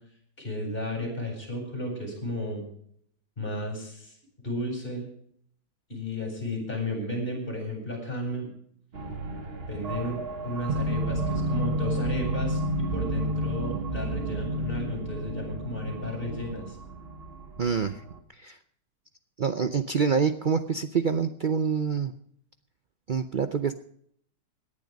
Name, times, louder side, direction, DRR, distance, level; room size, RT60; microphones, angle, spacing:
voice 1, 0.4-2.6 3.4-4.2 4.4-5.1 5.9-8.5 9.7-10.2 10.4-12.6 12.9-16.8, left 1 dB, 30° left, 1 dB, 8.2 m, -33 dB
sound 1, 8.9-18.2, right 1 dB, 35° right, 1.6 m, -31 dB
voice 2, 17.6-18.0 18.4-18.6 19.4-22.1 23.1-23.7, right 6 dB, 65° right, 9 dB, 0.4 m, -26 dB
18.0 x 11.0 x 5.3 m, 0.65 s
omnidirectional pair, 1.9 m